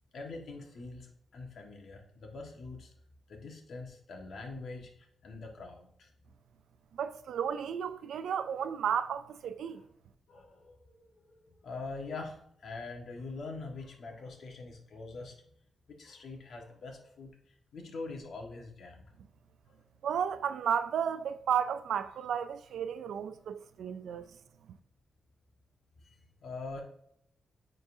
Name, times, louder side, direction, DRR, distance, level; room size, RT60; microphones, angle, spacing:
voice 1, 0.1-2.9 3.3-6.1 9.6-9.8 10.3-15.3 15.9-17.3 17.7-19.1 19.7-19.8 24.1-24.3 26.0-26.1 26.4-26.8, left 3 dB, 65° left, 1.4 m, -44 dB
voice 2, 7.0-9.8 20.0-24.3, right 8 dB, 85° right, 0.3 m, -33 dB
9.4 x 3.9 x 2.7 m
wide cardioid pair, 115°, 0 cm